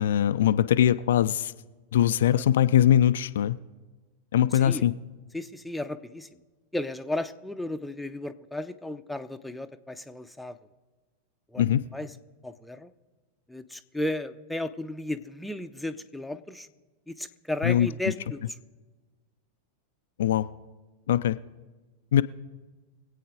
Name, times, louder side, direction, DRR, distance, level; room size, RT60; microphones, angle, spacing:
voice 1, 0.0-1.5 1.9-3.6 4.3-4.9 11.6-11.8 17.6-17.9 20.2-20.5 21.1-21.4 22.1-22.2, left 11 dB, 60° left, 12 dB, 0.3 m, -21 dB
voice 2, 5.3-6.3 6.7-10.6 11.5-11.6 11.9-12.1 12.4-12.9 13.5-16.7 17.1-18.4, left 1 dB, ahead, 8 dB, 0.6 m, -34 dB
24.0 x 8.5 x 3.9 m, 1.3 s
figure-of-eight pair, 90°, 0 cm